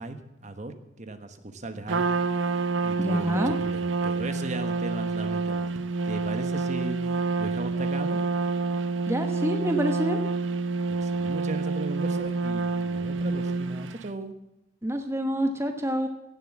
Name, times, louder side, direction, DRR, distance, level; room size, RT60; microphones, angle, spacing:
voice 1, 0.0-2.0 2.8-7.0 7.4-8.2 10.9-14.3, right 2 dB, 40° right, 9 dB, 1.2 m, -37 dB
Trumpet, 1.9-14.0, right 3 dB, 80° right, 0.8 m, -28 dB
voice 2, 3.0-3.6 9.1-10.2 14.8-16.1, equal, 15° right, 5 dB, 1.0 m, -27 dB
16.5 x 7.7 x 7.3 m, 0.90 s
head